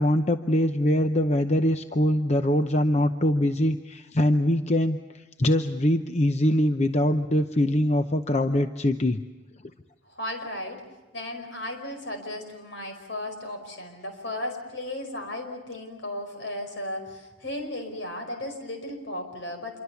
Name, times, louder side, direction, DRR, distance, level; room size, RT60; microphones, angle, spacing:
voice 1, 0.0-9.2, left 1 dB, 35° left, 8 dB, 0.8 m, -23 dB
voice 2, 10.1-10.8 11.1-19.8, left 1 dB, 65° left, 5 dB, 5.0 m, -35 dB
27.0 x 23.5 x 7.1 m, 1.1 s
head